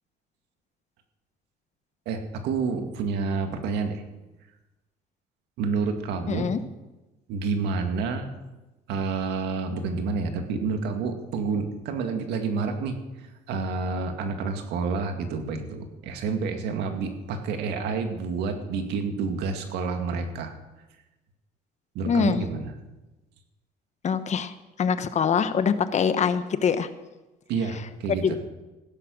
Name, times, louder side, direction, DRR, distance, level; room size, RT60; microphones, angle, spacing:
voice 1, 2.1-4.0 5.6-6.5 7.3-8.3 8.9-20.5 21.9-22.7 27.5-28.4, right 4 dB, 85° right, 5 dB, 2.1 m, -29 dB
voice 2, 6.3-6.6 22.1-22.4 24.0-26.9 28.2-28.4, left 6 dB, 45° left, 12 dB, 1.1 m, -24 dB
16.0 x 11.0 x 6.5 m, 1.1 s
cardioid pair, 110°, 17 cm